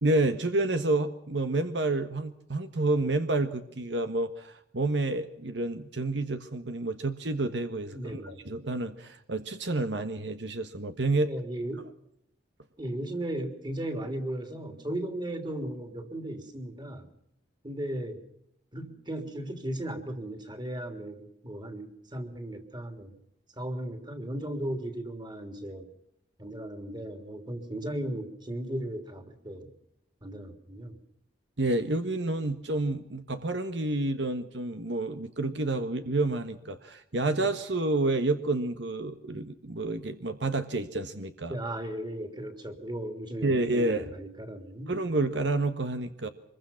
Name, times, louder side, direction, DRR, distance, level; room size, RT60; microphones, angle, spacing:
voice 1, 0.0-11.3 31.6-41.6 43.4-44.1 44.9-46.3, right 2 dB, 75° right, 9 dB, 1.5 m, -29 dB
voice 2, 7.9-8.4 11.2-11.8 12.8-17.1 17.6-18.2 18.7-23.1 23.6-25.9 26.4-29.7 30.2-31.0 41.5-44.9, right 1 dB, 25° right, 7 dB, 3.2 m, -36 dB
25.0 x 22.5 x 5.9 m, 0.74 s
head